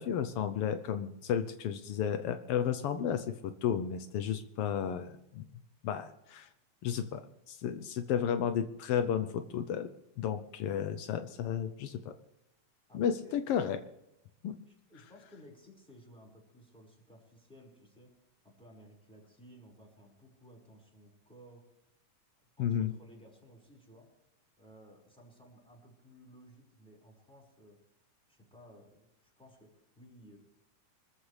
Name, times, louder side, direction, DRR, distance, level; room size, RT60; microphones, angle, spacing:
voice 1, 0.0-5.4 5.8-6.5 6.8-7.2 7.5-9.9 10.2-12.1 12.9-13.8 14.4-14.6 22.6-22.9, left 8 dB, 85° left, 10 dB, 1.2 m, -33 dB
voice 2, 12.9-13.4 14.7-18.1 18.4-21.7 22.6-24.1 24.6-27.8 28.3-30.4, equal, ahead, -2 dB, 5.0 m, -57 dB
25.5 x 14.5 x 3.3 m, 0.85 s
omnidirectional pair, 3.6 m